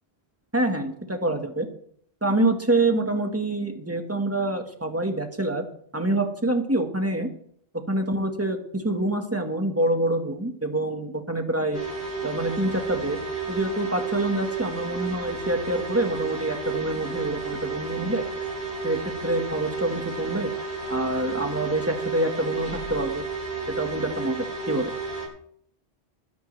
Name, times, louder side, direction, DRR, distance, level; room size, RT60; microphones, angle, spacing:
voice 1, 0.5-1.7 2.2-5.6 5.9-7.3 7.9-11.8 12.2-13.2 13.5-18.2 18.8-20.5 20.9-23.2 23.8-24.4 24.7-24.9, right 1 dB, 15° right, 4 dB, 1.7 m, -26 dB
sound 1, 11.7-25.3, right 4 dB, 80° left, 6.3 m, -32 dB
21.5 x 10.5 x 3.4 m, 0.65 s
omnidirectional pair, 1.1 m